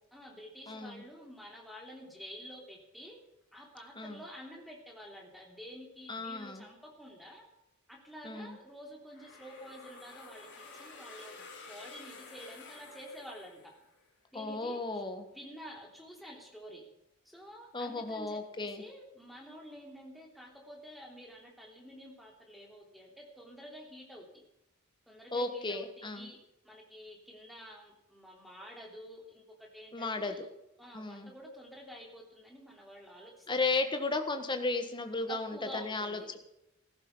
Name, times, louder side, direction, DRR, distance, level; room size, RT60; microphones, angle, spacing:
voice 1, 0.1-3.2 3.5-7.4 7.9-10.5 10.7-13.7 14.3-15.0 15.3-16.8 17.2-24.4 25.1-26.4 26.6-30.4 30.8-33.7 35.3-36.4, equal, ahead, 0 dB, 3.1 m, -49 dB
voice 2, 0.7-1.0 3.9-4.2 6.1-6.6 8.2-8.6 14.3-15.3 17.7-18.8 25.3-26.3 29.9-30.5 30.9-31.3 33.5-36.4, left 3 dB, 20° left, 7 dB, 1.4 m, -34 dB
sound 1, 9.1-14.0, left 4 dB, 50° left, 4.3 m, -51 dB
16.0 x 13.5 x 5.5 m, 0.86 s
head